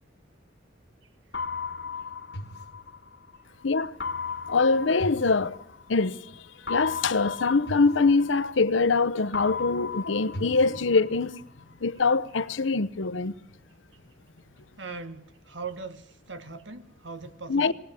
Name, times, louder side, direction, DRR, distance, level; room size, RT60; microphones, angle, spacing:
sound 1, 1.3-3.4 4.0-6.1 6.7-9.0 9.3-11.4, left 4 dB, 60° left, 1.4 m, -36 dB
voice 1, 3.6-4.0 4.5-5.6 5.9-11.4 11.8-13.3 17.5-17.7, left 4 dB, 90° left, 0.8 m, -24 dB
voice 2, 14.8-17.7, right 4 dB, 80° right, 1.5 m, -40 dB
19.5 x 19.0 x 7.6 m
head